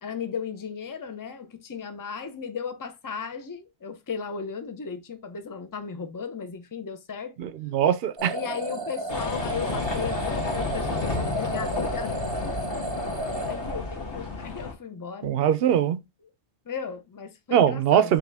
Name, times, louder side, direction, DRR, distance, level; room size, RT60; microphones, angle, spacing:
voice 1, 0.0-7.4 8.3-12.3 13.5-15.3 16.7-18.2, left 6 dB, 25° left, 0.5 m, -36 dB
voice 2, 7.4-8.3 15.2-16.0 17.5-18.2, right 9 dB, 65° right, 0.7 m, -22 dB
sound 1, 8.2-14.3, right 3 dB, 20° right, 0.9 m, -33 dB
sound 2, 9.1-14.7, left 4 dB, 55° left, 1.6 m, -31 dB
4.9 x 3.0 x 3.4 m
omnidirectional pair, 1.2 m